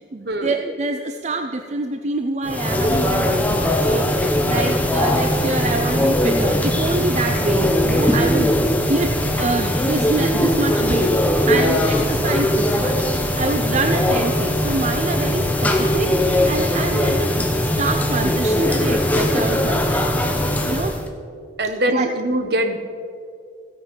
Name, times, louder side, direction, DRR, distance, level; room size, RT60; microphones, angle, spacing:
voice 1, 0.1-8.5 8.9-11.1 11.5-20.1 20.7-21.0 21.9-22.1, right 3 dB, 35° right, 7 dB, 0.4 m, -26 dB
sound 1, 2.4-21.1, left 1 dB, 10° left, 0.9 m, -20 dB
voice 2, 21.6-22.8, right 1 dB, 55° right, 7 dB, 1.1 m, -23 dB
15.5 x 8.6 x 5.4 m, 2.3 s
head